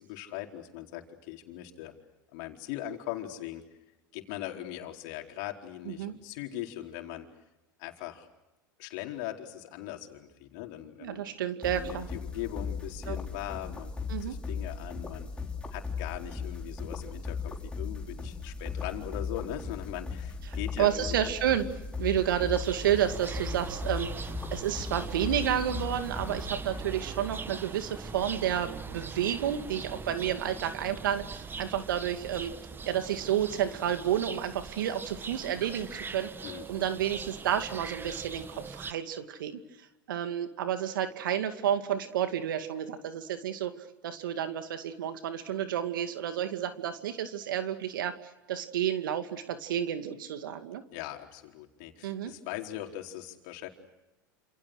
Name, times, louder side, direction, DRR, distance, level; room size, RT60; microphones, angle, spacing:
voice 1, 0.0-1.9 2.3-3.6 4.1-7.3 7.8-8.3 8.8-11.2 11.7-15.3 15.7-21.3 36.4-36.7 50.9-53.7, left 13 dB, 60° left, 3 dB, 4.4 m, -40 dB
voice 2, 5.9-6.2 11.0-12.1 13.1-13.2 14.1-14.4 20.8-32.5 32.9-36.3 36.7-39.6 40.1-43.7 44.0-48.1 48.5-50.8 52.0-52.3, right 10 dB, 75° right, 9 dB, 2.3 m, -30 dB
sound 1, 11.6-27.1, left 5 dB, 10° left, 4.1 m, -37 dB
sound 2, 22.0-38.9, right 5 dB, 20° right, 1.7 m, -41 dB
28.5 x 28.5 x 6.5 m, 1.0 s
hypercardioid pair, 95°, 11 cm